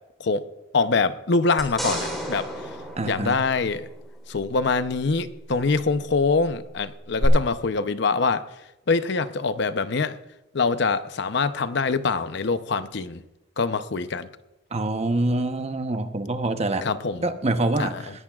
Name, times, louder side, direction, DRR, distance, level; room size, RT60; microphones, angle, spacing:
voice 1, 0.7-2.5 3.0-3.9 4.3-8.4 8.9-10.2 10.5-13.2 13.6-14.3 16.8-17.2 17.8-18.0, left 4 dB, 65° left, 12 dB, 0.7 m, -24 dB
sound 1, 1.6-4.1 7.2-7.3, equal, ahead, 3.6 m, -32 dB
voice 2, 3.0-3.4 14.7-16.9 17.2-18.1, right 2 dB, 35° right, 8 dB, 0.9 m, -25 dB
20.0 x 16.5 x 2.4 m, 0.99 s
head